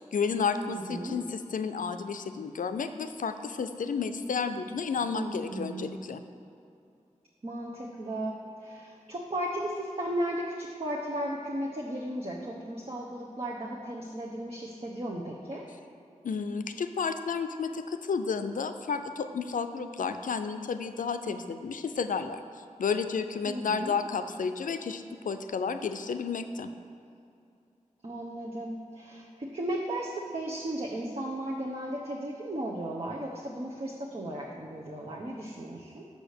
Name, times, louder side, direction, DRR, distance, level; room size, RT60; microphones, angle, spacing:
voice 1, 0.0-6.2 16.2-26.7, left 5 dB, 85° left, 9 dB, 0.4 m, -32 dB
voice 2, 0.7-1.2 5.1-6.0 7.4-15.7 23.4-23.9 28.0-36.1, right 1 dB, 50° right, -2 dB, 0.9 m, -35 dB
6.7 x 5.0 x 6.5 m, 2.5 s
cardioid pair, 50°, 13 cm